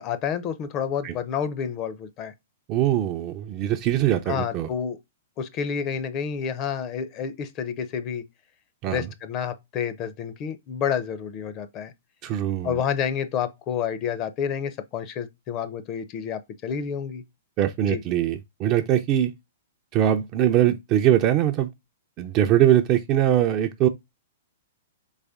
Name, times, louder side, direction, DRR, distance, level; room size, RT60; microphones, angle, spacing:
voice 1, 0.0-2.3 4.3-5.0 5.4-8.2 8.9-11.9 12.6-17.2 17.8-18.0, left 8 dB, 35° left, 0.6 m, -29 dB
voice 2, 2.7-4.7 8.8-9.1 12.2-12.8 17.6-19.3 19.9-21.7 22.2-23.9, right 11 dB, 35° right, 0.5 m, -22 dB
4.1 x 3.3 x 3.5 m
hypercardioid pair, 135°, 0 cm